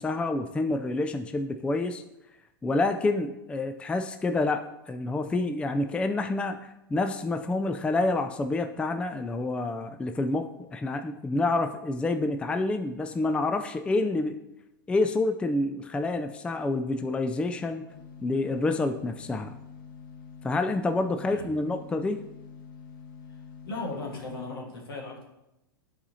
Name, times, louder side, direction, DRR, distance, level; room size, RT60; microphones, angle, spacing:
voice 1, 0.0-2.0 2.6-14.4 14.9-17.9 18.2-19.5 20.4-22.2, left 2 dB, 10° left, 7 dB, 0.4 m, -28 dB
sound 1, 17.9-24.5, left 6 dB, 60° left, 1.1 m, -46 dB
voice 2, 23.6-25.2, left 2 dB, 80° left, 0 dB, 1.7 m, -36 dB
10.5 x 4.3 x 2.8 m, 0.91 s
hypercardioid pair, 105°, 12 cm